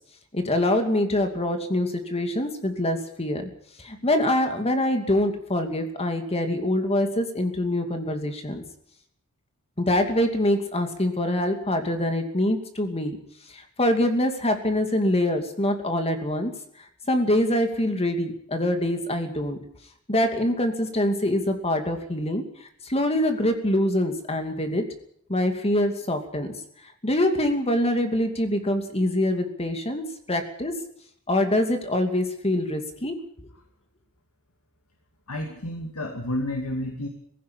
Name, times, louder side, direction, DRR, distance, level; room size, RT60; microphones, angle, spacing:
voice 1, 0.3-3.5 3.8-8.6 9.8-13.2 13.5-16.5 17.1-19.6 20.1-22.4 22.8-24.8 25.3-26.5 27.0-30.0 30.3-30.7 31.3-33.2, left 1 dB, 30° left, 6 dB, 2.6 m, -24 dB
voice 2, 35.3-37.1, left 1 dB, 75° left, 3 dB, 2.4 m, -30 dB
18.0 x 16.0 x 8.8 m, 0.68 s
head